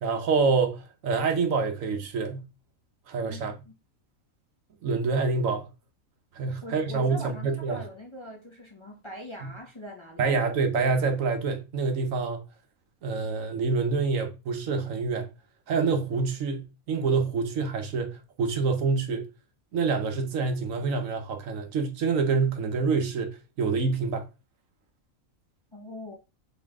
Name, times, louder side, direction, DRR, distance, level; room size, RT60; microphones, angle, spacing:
voice 1, 0.0-2.4 3.1-3.5 4.8-5.7 6.4-7.8 9.4-9.5 10.2-12.4 13.0-15.3 15.7-19.3 19.7-24.3, right 4 dB, 70° right, 1.2 m, -27 dB
voice 2, 3.2-3.7 6.6-10.4 25.7-26.2, equal, 25° left, 0.7 m, -42 dB
4.2 x 3.6 x 3.5 m
omnidirectional pair, 1.4 m